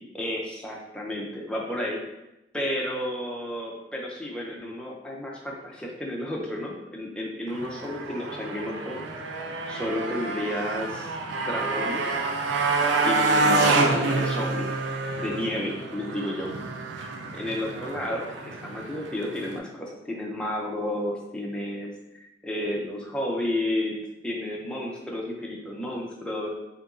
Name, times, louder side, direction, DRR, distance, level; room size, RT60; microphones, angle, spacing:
voice 1, 0.1-2.0 2.5-9.0 9.7-11.1 11.5-12.1 13.0-14.7 15.2-16.5 17.0-22.0 22.4-24.0 24.2-26.6, left 1 dB, 5° left, -2 dB, 0.5 m, -31 dB
Motorcycle, 7.5-19.6, right 3 dB, 85° right, 0.4 m, -28 dB
2.8 x 2.6 x 3.5 m, 0.93 s
head